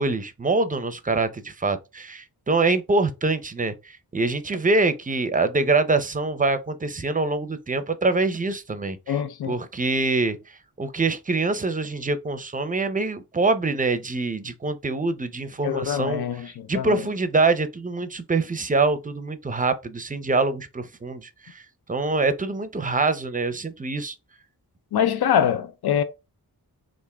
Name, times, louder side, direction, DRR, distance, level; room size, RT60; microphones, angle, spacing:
voice 1, 0.0-3.7 4.1-9.2 9.5-10.4 10.8-16.3 16.7-21.6 21.9-24.1, right 3 dB, 20° right, 0.5 m, -24 dB
voice 2, 9.1-9.6 15.6-17.0 24.9-26.0, left 9 dB, 70° left, 0.5 m, -24 dB
3.6 x 2.5 x 3.3 m
wide cardioid pair, 60°, 39 cm